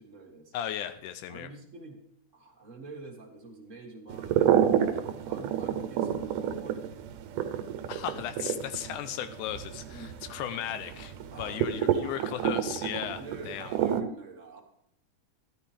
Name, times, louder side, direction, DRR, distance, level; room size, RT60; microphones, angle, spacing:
voice 1, 0.0-0.5 1.3-2.0 2.3-4.6 5.0-6.8 9.9-10.2 11.3-12.3 13.2-14.6, right 3 dB, 35° right, 2 dB, 1.4 m, -46 dB
voice 2, 0.5-1.5 7.9-13.7, left 11 dB, 85° left, 10 dB, 2.2 m, -36 dB
sound 1, 4.1-14.0, right 9 dB, 85° right, 2.4 m, -29 dB
13.0 x 13.0 x 3.4 m, 0.73 s
omnidirectional pair, 3.6 m